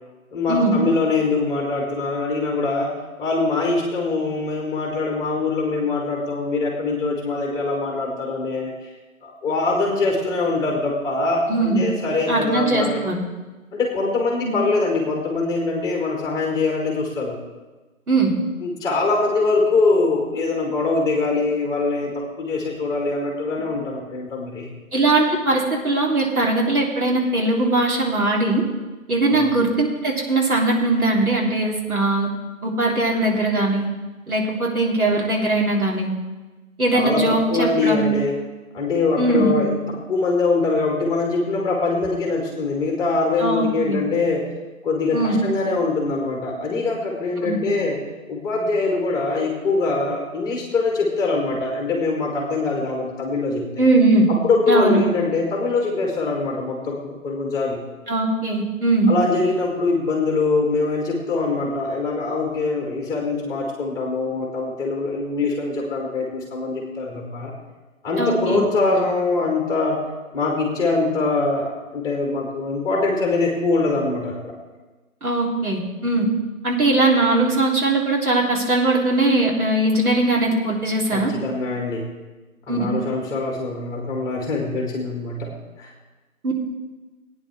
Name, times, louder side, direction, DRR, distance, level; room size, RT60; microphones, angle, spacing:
voice 1, 0.3-2.9 3.2-8.9 9.2-13.0 13.7-17.4 18.6-24.7 29.3-29.5 36.9-38.3 38.7-44.4 44.8-48.0 48.3-53.7 54.3-57.8 59.1-67.5 68.0-70.0 70.3-74.5 81.1-82.1 82.7-85.5 85.8-85.9, left 3 dB, 10° left, -1 dB, 1.8 m, -23 dB
voice 2, 11.5-11.8 12.3-13.2 14.4-14.5 18.1-18.3 24.9-28.6 29.1-32.3 32.6-33.9 34.3-36.1 36.8-38.1 39.2-39.6 43.4-44.0 45.1-45.3 47.4-47.6 53.8-54.3 54.7-55.0 58.1-59.1 68.2-68.6 75.2-76.2 76.6-81.3 82.7-82.8 86.4-86.5, right 2 dB, 85° right, -2 dB, 3.5 m, -20 dB
17.0 x 9.6 x 3.6 m, 1.2 s
figure-of-eight pair, 145°, 43 cm